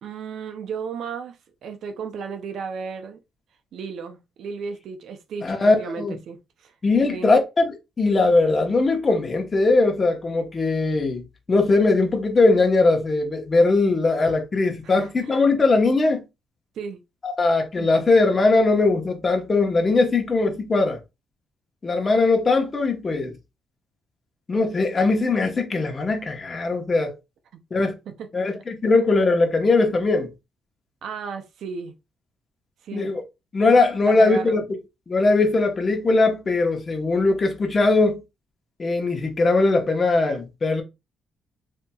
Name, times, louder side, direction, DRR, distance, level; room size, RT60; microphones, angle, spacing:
voice 1, 0.0-3.2 3.7-6.7 7.1-7.3 14.8-15.4 16.7-17.0 17.8-18.1 28.1-28.3 31.0-31.9 32.8-33.1 34.1-34.6, right 5 dB, 70° right, 0.5 m, -34 dB
voice 2, 5.4-6.2 6.8-16.2 17.2-21.0 21.8-23.4 24.5-27.1 27.7-27.9 28.3-30.3 32.9-33.2 33.5-34.6 35.1-38.2 38.8-40.8, left 3 dB, 35° left, 1.0 m, -20 dB
4.2 x 2.8 x 2.3 m
cardioid pair, 90°, 0 cm